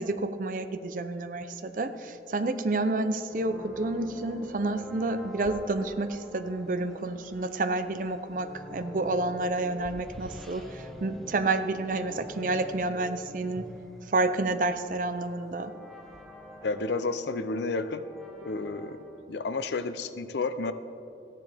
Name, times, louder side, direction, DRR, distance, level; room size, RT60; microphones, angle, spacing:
voice 1, 0.0-13.7 14.1-15.7, right 2 dB, 50° right, 10 dB, 0.5 m, -29 dB
sound 1, 3.3-19.2, left 1 dB, ahead, 0.7 m, -46 dB
voice 2, 16.6-18.0 18.4-19.0 19.3-20.7, left 3 dB, 75° left, 11 dB, 0.5 m, -31 dB
14.0 x 9.9 x 3.4 m, 2.6 s
head